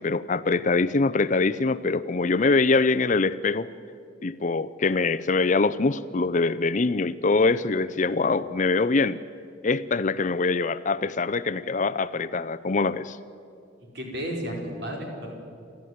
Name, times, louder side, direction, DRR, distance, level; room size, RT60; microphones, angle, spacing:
voice 1, 0.0-3.7 4.2-9.2 9.6-13.2, left 3 dB, 40° left, 15 dB, 0.5 m, -24 dB
voice 2, 13.9-15.4, equal, 55° right, 1 dB, 4.7 m, -33 dB
29.5 x 13.5 x 9.5 m, 2.4 s
head